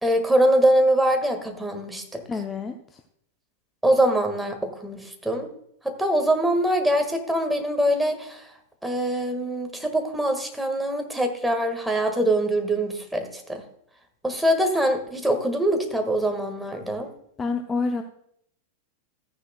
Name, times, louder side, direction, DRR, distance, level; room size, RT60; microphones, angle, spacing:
voice 1, 0.0-2.2 3.8-5.5 5.8-8.4 8.8-13.6 14.2-17.1, right 1 dB, 5° right, 4 dB, 1.6 m, -23 dB
voice 2, 2.3-3.0 17.4-18.0, left 4 dB, 20° left, 6 dB, 0.7 m, -28 dB
14.0 x 9.8 x 2.2 m, 0.72 s
figure-of-eight pair, 90°, 0 cm